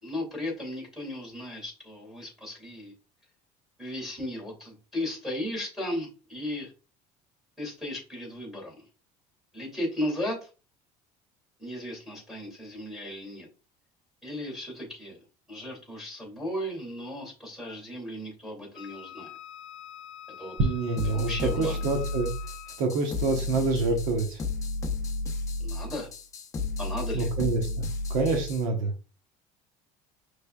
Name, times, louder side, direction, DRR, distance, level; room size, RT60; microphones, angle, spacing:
voice 1, 0.0-2.9 3.8-6.7 7.6-8.9 9.5-10.4 11.6-13.5 14.2-15.2 15.5-19.3 20.4-20.6 21.0-21.8 25.6-26.1 26.8-27.3, left 1 dB, 5° right, -1 dB, 2.4 m, -35 dB
Wind instrument woodwind instrument, 18.7-23.0, left 12 dB, 75° left, 0.5 m, -45 dB
voice 2, 20.6-21.3 21.6-22.3 22.8-24.4 27.1-27.8 28.1-28.9, right 3 dB, 70° right, 4 dB, 1.0 m, -27 dB
sound 1, 21.0-28.7, left 2 dB, 20° left, 0.6 m, -32 dB
5.3 x 3.2 x 2.3 m, 0.33 s
cardioid pair, 150°, 15 cm